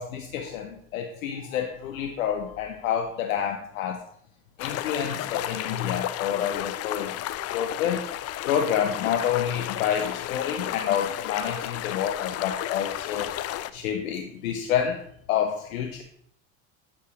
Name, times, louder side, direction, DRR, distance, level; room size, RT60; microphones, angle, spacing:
voice 1, 0.0-4.0 4.6-7.1 7.5-8.1 8.4-13.3 13.7-16.0, left 9 dB, 90° left, 4 dB, 0.7 m, -28 dB
sound 1, 4.6-13.7, left 13 dB, 40° left, 0.4 m, -33 dB
8.6 x 6.4 x 2.9 m, 0.70 s
hypercardioid pair, 75°, 40 cm